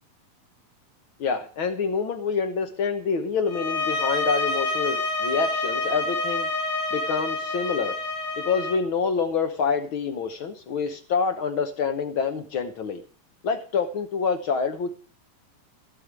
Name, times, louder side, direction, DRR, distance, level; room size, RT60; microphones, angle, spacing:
voice 1, 1.2-6.5 6.9-8.0 8.4-13.0 13.4-14.9, left 5 dB, 85° left, 8 dB, 1.1 m, -27 dB
sound 1, 3.5-8.8, left 2 dB, 55° left, 3.1 m, -28 dB
16.0 x 5.6 x 9.5 m, 0.40 s
omnidirectional pair, 3.9 m